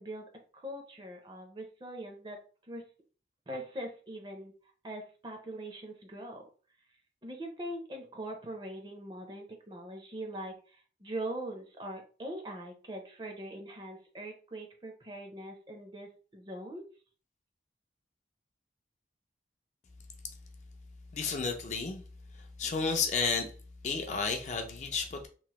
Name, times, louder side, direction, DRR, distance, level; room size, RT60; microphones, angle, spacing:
voice 1, 0.0-2.9 3.5-4.5 4.8-6.5 7.2-16.9, right 1 dB, 25° right, 3 dB, 0.5 m, -42 dB
voice 2, 21.1-22.0 22.6-23.5 23.8-25.3, left 5 dB, 40° left, 4 dB, 0.4 m, -31 dB
3.0 x 2.0 x 2.9 m, 0.39 s
head